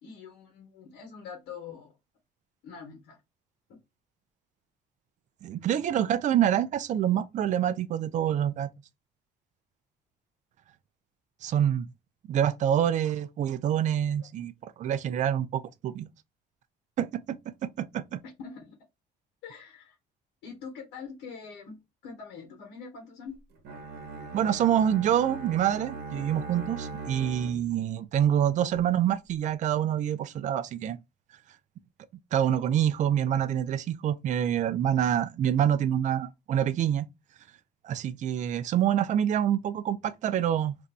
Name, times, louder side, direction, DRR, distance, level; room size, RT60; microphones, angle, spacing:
voice 1, 0.0-1.9 2.6-3.2 3.7-3.8 18.4-18.8 19.4-20.0 20.4-21.8 22.0-23.4, left 6 dB, 80° left, 1.0 m, -44 dB
voice 2, 5.4-8.7 11.4-11.9 12.3-16.1 17.0-18.2 24.3-31.0 32.3-37.1 37.8-40.8, right 10 dB, 45° right, 0.4 m, -26 dB
Bowed string instrument, 23.6-28.1, right 4 dB, 70° right, 1.0 m, -40 dB
2.6 x 2.2 x 3.9 m
cardioid pair, 110°, 17 cm